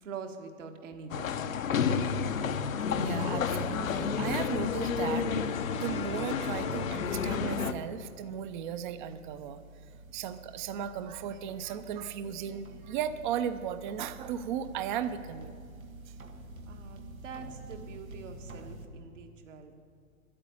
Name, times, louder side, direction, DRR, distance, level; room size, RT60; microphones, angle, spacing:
voice 1, 0.0-1.9 16.7-19.7, right 5 dB, 65° right, 5 dB, 1.6 m, -45 dB
sound 1, 1.1-7.7, left 6 dB, 75° left, 0.8 m, -30 dB
sound 2, 1.5-18.9, right 2 dB, 90° right, 1.3 m, -50 dB
voice 2, 3.0-9.6 10.1-15.6, right 9 dB, 35° right, 11 dB, 0.6 m, -36 dB
Brass instrument, 5.3-8.0, left 6 dB, 15° left, 0.7 m, -44 dB
11.0 x 8.8 x 8.4 m, 2.3 s
hypercardioid pair, 125°, 40 cm